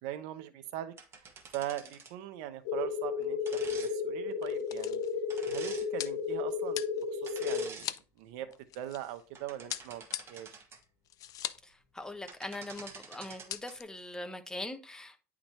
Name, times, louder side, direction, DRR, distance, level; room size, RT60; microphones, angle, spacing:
voice 1, 0.0-0.9 1.5-5.0 5.5-8.5 8.7-10.5, right 12 dB, 75° right, 0.9 m, -41 dB
sound 1, 1.0-2.2 3.5-3.9 5.3-5.9 7.3-7.9 8.4-8.6 9.2-10.8 12.0-12.1 12.3-13.8, right 5 dB, 35° right, 1.5 m, -48 dB
sound 2, 2.7-7.6, left 5 dB, 85° left, 1.1 m, -33 dB
sound 3, 2.7-2.9 3.2-3.3 4.1-9.2 9.7-11.7 12.0-12.1 12.3-12.9 13.2-13.8, left 13 dB, 50° left, 0.5 m, -42 dB
voice 2, 11.6-15.2, left 1 dB, 10° left, 1.1 m, -42 dB
9.9 x 3.7 x 3.1 m
supercardioid pair, 110°, 8 cm